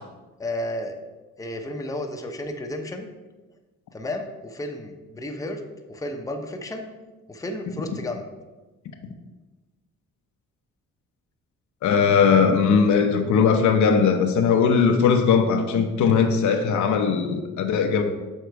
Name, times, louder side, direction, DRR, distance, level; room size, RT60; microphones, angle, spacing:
voice 1, 0.4-0.9 1.4-3.1 3.9-5.6 5.9-6.9 7.3-8.3, left 1 dB, 10° left, 3 dB, 0.7 m, -32 dB
voice 2, 11.8-18.0, left 6 dB, 70° left, 5 dB, 0.8 m, -19 dB
6.6 x 3.8 x 4.6 m, 1.2 s
cardioid pair, 90°, 30 cm